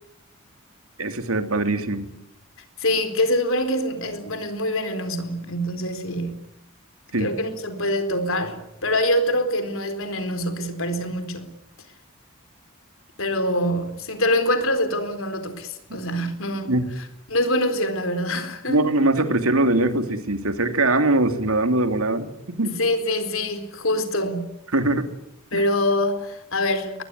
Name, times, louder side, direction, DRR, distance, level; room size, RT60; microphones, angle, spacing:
voice 1, 1.0-2.1 7.1-7.3 15.9-16.0 16.7-16.9 18.7-22.3 22.6-22.8 24.7-25.1 25.5-25.7, right 2 dB, 75° right, 2.8 m, -22 dB
voice 2, 2.8-6.5 7.2-11.6 13.2-16.7 17.3-18.8 22.6-24.6 25.5-27.0, left 1 dB, 65° left, 4.1 m, -25 dB
22.0 x 22.0 x 9.8 m
head